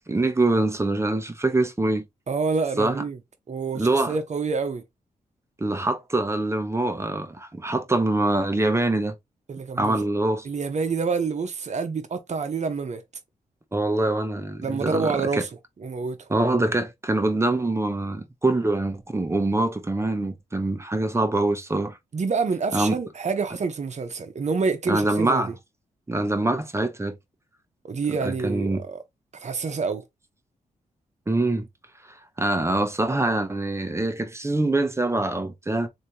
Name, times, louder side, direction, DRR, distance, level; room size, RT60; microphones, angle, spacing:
voice 1, 0.0-2.1 2.8-3.0 3.7-4.2 5.6-9.2 9.8-10.5 13.7-15.4 16.3-22.0 22.7-23.0 24.9-25.5 26.1-27.2 28.2-28.8 31.3-31.6 32.1-35.9, right 2 dB, 20° right, 0.9 m, -24 dB
voice 2, 2.3-3.2 3.5-4.8 9.5-10.0 10.4-13.0 14.6-15.5 15.8-16.3 22.1-25.5 27.8-29.0 29.4-30.0, right 4 dB, 50° right, 0.9 m, -27 dB
3.3 x 2.8 x 2.8 m
cardioid pair, 65°, 15 cm